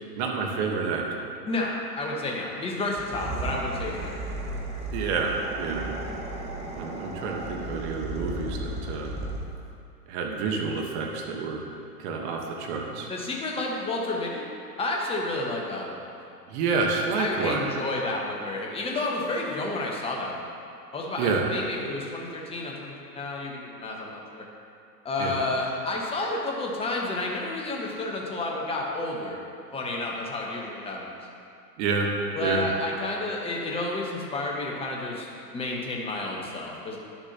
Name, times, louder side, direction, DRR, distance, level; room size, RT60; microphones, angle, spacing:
voice 1, 0.1-1.3 4.9-6.0 6.7-9.2 10.1-11.7 12.0-13.1 16.5-17.6 21.2-21.5 25.2-25.4 31.8-32.1 32.4-32.7, right 4 dB, 40° right, 1 dB, 1.2 m, -28 dB
voice 2, 1.4-4.3 13.1-14.4 14.8-16.2 17.2-20.5 20.9-24.5 25.0-29.4 29.7-31.2 32.4-37.0, left 2 dB, 10° left, -1 dB, 1.1 m, -31 dB
sound 1, 2.9-9.7, right 2 dB, 15° right, 0.8 m, -35 dB
11.0 x 7.0 x 2.9 m, 2.5 s
hypercardioid pair, 115°, 48 cm